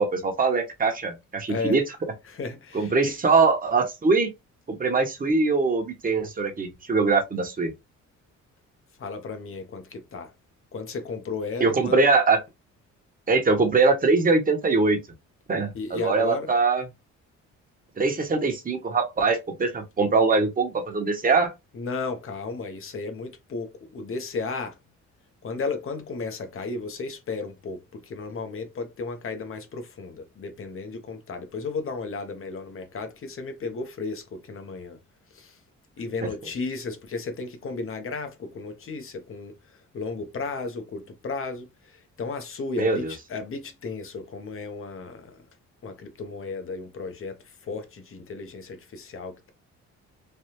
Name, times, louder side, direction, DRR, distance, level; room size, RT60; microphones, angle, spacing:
voice 1, 0.0-1.8 2.7-4.3 4.7-7.7 11.6-12.4 13.3-15.0 15.5-16.8 18.0-21.5 36.2-36.3 42.8-43.1, right 4 dB, 30° right, 1.0 m, -22 dB
voice 2, 1.5-1.8 2.3-3.1 9.0-10.3 10.7-12.0 15.7-16.5 21.7-24.8 25.4-35.0 35.3-35.6 36.0-45.4 45.8-49.5, left 4 dB, 45° left, 0.9 m, -34 dB
3.4 x 2.3 x 2.9 m
cardioid pair, 90°, 30 cm